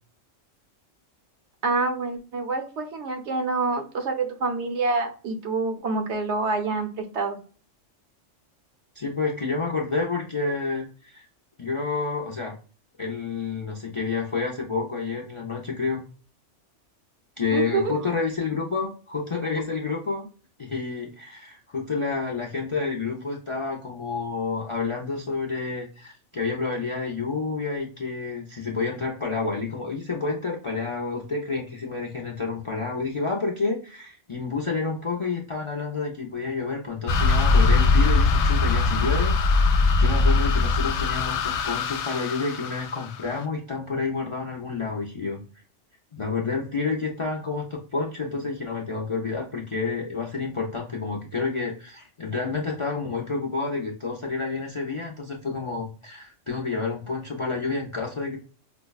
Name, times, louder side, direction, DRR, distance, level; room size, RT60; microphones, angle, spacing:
voice 1, 1.6-7.4 17.5-17.8, right 3 dB, 70° right, 5 dB, 1.0 m, -27 dB
voice 2, 8.9-11.3 11.6-12.5 13.0-16.0 17.4-20.3 20.6-45.4 46.1-58.4, left 4 dB, 45° left, 0 dB, 0.4 m, -29 dB
sound 1, 37.1-43.4, left 3 dB, 70° left, 0.8 m, -21 dB
5.2 x 2.1 x 2.3 m, 0.39 s
omnidirectional pair, 1.3 m